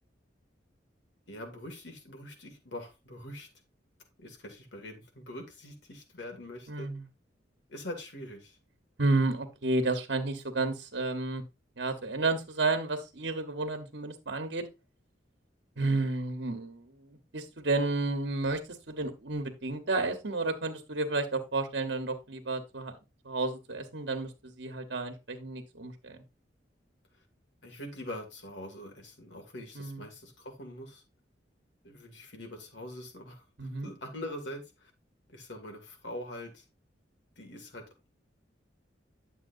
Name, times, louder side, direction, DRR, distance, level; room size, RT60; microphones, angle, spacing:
voice 1, 1.3-3.5 4.2-6.9 7.7-8.6 27.6-31.0 31.8-34.9 35.3-36.6 37.4-38.1, left 1 dB, 75° left, 2.3 m, -43 dB
voice 2, 6.7-7.0 9.0-11.4 11.8-14.6 15.8-18.6 18.9-22.9 23.2-26.2 29.8-30.0 33.6-33.9, right 3 dB, 70° right, 1.2 m, -31 dB
10.5 x 7.2 x 2.6 m
head